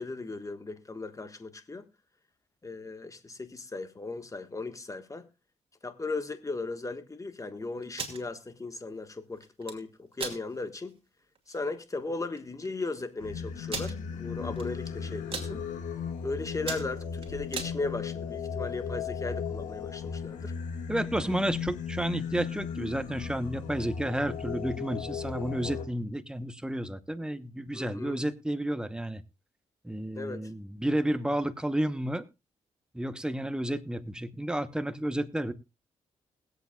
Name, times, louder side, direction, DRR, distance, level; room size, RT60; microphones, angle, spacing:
voice 1, 0.0-1.8 2.6-5.3 5.8-10.9 11.5-15.6 16.2-20.5 27.7-28.2 30.1-30.5, left 3 dB, 25° left, 1.5 m, -37 dB
sound 1, 7.8-8.2 9.4-9.8 10.2-10.4 10.9-11.0 11.3-11.6 12.4-12.5 12.6-12.7 13.7-13.9 14.6-14.9 15.1-15.5 16.1-16.2 16.5-17.7, right 4 dB, 45° right, 2.5 m, -36 dB
Singing, 13.2-25.8, left 7 dB, 85° left, 2.2 m, -36 dB
voice 2, 20.9-29.2 29.8-32.3 32.9-35.5, right 1 dB, 5° right, 1.0 m, -31 dB
21.0 x 8.2 x 2.4 m
cardioid pair, 60°, 13 cm